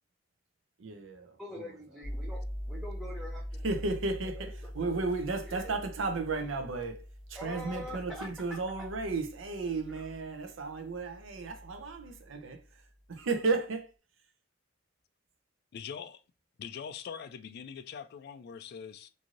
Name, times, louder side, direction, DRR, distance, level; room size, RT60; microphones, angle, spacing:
voice 1, 0.8-1.7 3.6-13.9, right 3 dB, 75° right, 0.6 m, -34 dB
voice 2, 1.4-2.4 2.7-4.5 4.8-5.7 7.4-8.6 9.9-10.1, equal, ahead, 0.5 m, -45 dB
sound 1, 2.0-12.7, equal, 40° right, 1.1 m, -43 dB
voice 3, 15.7-16.2 16.6-19.1, left 7 dB, 55° left, 0.3 m, -43 dB
3.0 x 2.6 x 2.5 m
head